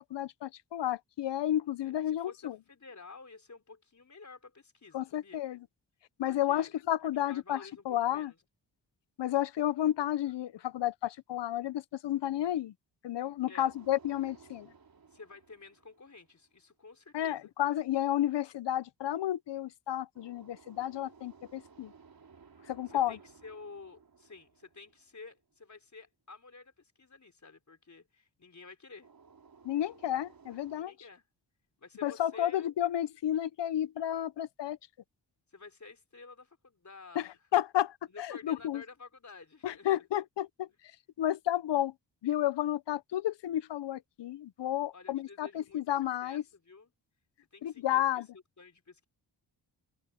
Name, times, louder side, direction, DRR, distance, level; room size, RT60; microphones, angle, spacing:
voice 1, 0.0-2.5 4.9-5.6 6.2-7.6 7.9-8.3 9.2-12.7 13.0-14.7 17.1-21.9 22.7-23.2 29.6-30.9 32.0-34.8 37.2-37.3 37.5-38.0 38.4-38.8 39.6-40.7 41.2-41.9 42.2-46.4 47.6-48.3, left 12 dB, 75° left, 0.8 m, -31 dB
voice 2, 1.8-5.4 6.2-6.7 7.0-8.4 13.5-13.7 15.1-17.5 22.9-29.1 30.8-31.2 31.8-32.7 35.5-37.4 38.1-40.0 44.9-46.9 47.5-48.2 48.6-49.1, left 4 dB, 40° left, 4.1 m, -52 dB
sound 1, 13.7-16.7 20.1-25.5 29.0-30.8, right 5 dB, 55° right, 3.3 m, -58 dB
cardioid pair, 65°, 42 cm